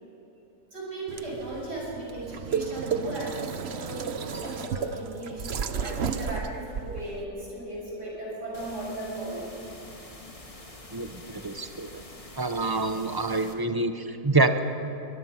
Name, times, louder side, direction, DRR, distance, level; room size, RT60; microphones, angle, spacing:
voice 1, 0.7-9.5 10.5-10.9, right 2 dB, 75° right, -5 dB, 7.6 m, -37 dB
sound 1, 1.1-7.2, right 6 dB, 50° right, 0.9 m, -33 dB
sound 2, 4.3-9.6, right 1 dB, 5° right, 2.8 m, -45 dB
sound 3, 8.5-13.5, left 1 dB, 20° left, 1.7 m, -46 dB
voice 2, 10.9-11.9 12.4-14.6, right 2 dB, 25° right, 8 dB, 0.5 m, -26 dB
23.5 x 20.5 x 5.9 m, 2.9 s
omnidirectional pair, 1.8 m